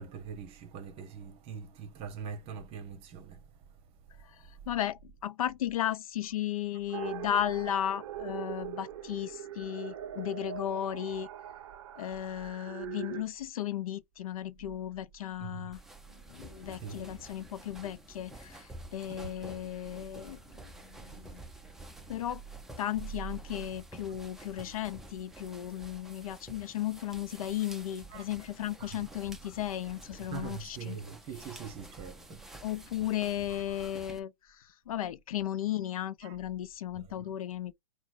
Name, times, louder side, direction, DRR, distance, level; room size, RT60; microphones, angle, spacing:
voice 1, 0.0-3.4 6.9-7.1 15.4-15.7 16.7-17.1 19.1-19.3 28.1-28.3 28.8-29.1 30.3-32.4 33.5-33.8 36.2-36.4 36.9-37.1, right 6 dB, 30° right, 1.1 m, -43 dB
voice 2, 4.7-11.3 12.0-15.8 16.3-21.4 22.1-22.4 22.8-31.0 32.6-37.7, left 11 dB, 60° left, 0.5 m, -35 dB
sound 1, 6.9-13.2, right 11 dB, 50° right, 0.6 m, -42 dB
sound 2, 15.7-34.2, right 1 dB, ahead, 0.6 m, -50 dB
3.8 x 2.2 x 4.5 m
hypercardioid pair, 120°, 20 cm